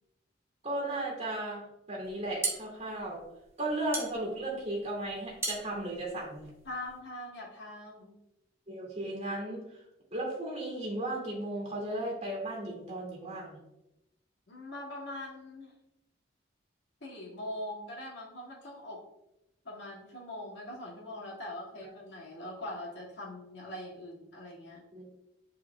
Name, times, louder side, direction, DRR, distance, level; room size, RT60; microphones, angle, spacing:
voice 1, 0.6-3.2 3.6-6.5 8.7-9.8 10.1-13.6 21.8-21.9 24.9-25.1, right 1 dB, 35° right, -3 dB, 2.2 m, -35 dB
sound 1, 2.0-7.0, right 3 dB, 15° right, 1.0 m, -38 dB
voice 2, 6.7-8.2 14.5-15.7 17.0-19.0 19.6-24.8, left 1 dB, 75° left, -4 dB, 2.2 m, -42 dB
9.6 x 4.8 x 2.4 m, 0.89 s
head